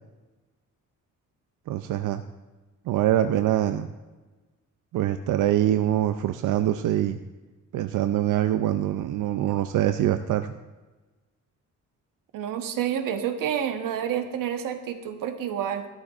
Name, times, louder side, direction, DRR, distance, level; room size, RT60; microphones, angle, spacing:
voice 1, 1.7-2.2 2.9-3.9 4.9-7.2 7.7-10.5, right 12 dB, 70° right, 9 dB, 0.5 m, -24 dB
voice 2, 12.3-15.9, right 9 dB, 90° right, 7 dB, 1.1 m, -29 dB
13.5 x 12.5 x 2.5 m, 1.2 s
cardioid pair, 180°, 32 cm